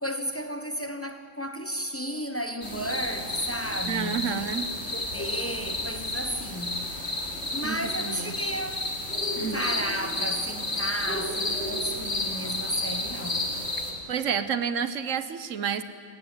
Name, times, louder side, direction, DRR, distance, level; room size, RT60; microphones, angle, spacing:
voice 1, 0.0-6.9 7.5-8.8 9.5-13.6, equal, 10° left, 1.2 m, -33 dB
sound 1, 2.6-13.9, left 2 dB, 60° left, 3.4 m, -31 dB
voice 2, 3.8-4.7 7.6-8.3 9.4-9.6 14.1-15.8, right 7 dB, 80° right, 1.3 m, -30 dB
22.0 x 18.5 x 9.0 m
omnidirectional pair, 1.3 m